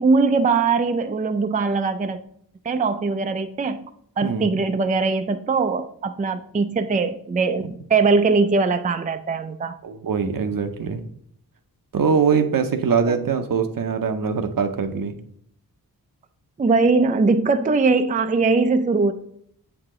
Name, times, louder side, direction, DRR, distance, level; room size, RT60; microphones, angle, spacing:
voice 1, 0.0-2.2 2.6-3.8 4.2-9.7 13.1-13.2 16.6-19.1, right 4 dB, 20° right, 9 dB, 0.4 m, -21 dB
voice 2, 4.2-4.6 9.8-11.0 11.9-15.2, right 6 dB, 60° right, 8 dB, 0.7 m, -22 dB
7.1 x 4.8 x 3.7 m, 0.67 s
cardioid pair, 60°, 37 cm